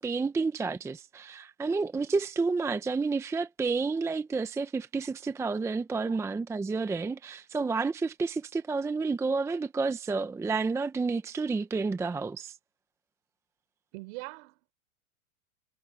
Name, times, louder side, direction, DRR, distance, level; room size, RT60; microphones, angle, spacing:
voice 1, 0.0-12.6, right 4 dB, 5° right, 0.6 m, -30 dB
voice 2, 13.9-14.7, right 27 dB, 50° right, 4.8 m, -42 dB
hypercardioid pair, 130°, 42 cm